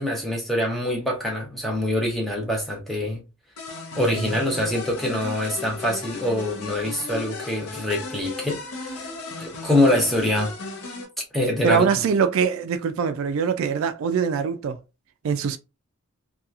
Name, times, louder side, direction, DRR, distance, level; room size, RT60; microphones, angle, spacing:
voice 1, 0.0-3.2 3.9-8.6 9.4-10.5 11.3-11.9, left 1 dB, ahead, 0.7 m, -24 dB
sound 1, 3.6-11.1, left 3 dB, 80° left, 0.7 m, -36 dB
voice 2, 11.6-14.8 15.2-15.6, right 6 dB, 70° right, 0.3 m, -23 dB
2.8 x 2.3 x 2.4 m
head